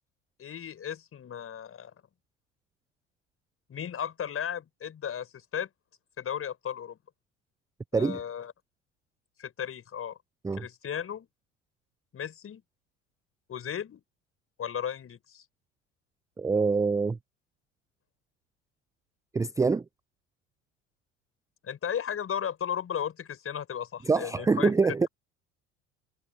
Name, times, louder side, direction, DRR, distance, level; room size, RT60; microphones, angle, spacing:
voice 1, 0.4-1.9 3.7-5.7 6.2-7.0 7.9-8.5 9.4-10.2 10.6-11.3 12.1-12.6 13.5-14.0 14.6-15.5 21.6-24.7, left 8 dB, 35° left, 7.2 m, -35 dB
voice 2, 16.4-17.2 19.3-19.8 24.0-25.1, right 4 dB, 10° right, 0.5 m, -25 dB
figure-of-eight pair, 65°, 38 cm